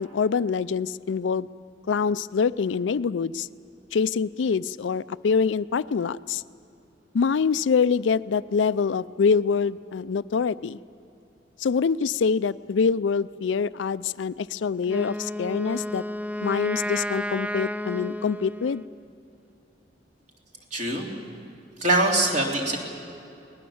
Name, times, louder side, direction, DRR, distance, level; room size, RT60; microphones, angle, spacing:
voice 1, 0.0-1.5 1.9-3.5 3.9-6.4 7.1-10.8 11.6-16.0 16.4-18.8, left 5 dB, 80° left, 17 dB, 0.4 m, -25 dB
Wind instrument woodwind instrument, 14.8-19.0, left 1 dB, 5° right, 0.5 m, -32 dB
voice 2, 20.7-21.1 21.8-22.8, right 2 dB, 40° right, 0 dB, 3.0 m, -23 dB
24.0 x 19.5 x 7.1 m, 2.7 s
head